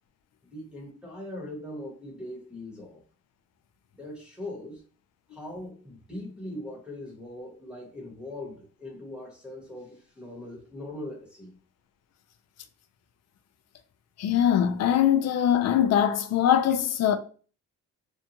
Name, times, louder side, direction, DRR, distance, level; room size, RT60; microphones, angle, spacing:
voice 1, 0.5-3.0 3.9-4.8 5.3-11.6, left 1 dB, 5° right, 1.0 m, -40 dB
voice 2, 14.2-17.2, left 10 dB, 60° left, 0.5 m, -22 dB
2.7 x 2.2 x 2.8 m
cardioid pair, 90°, 30 cm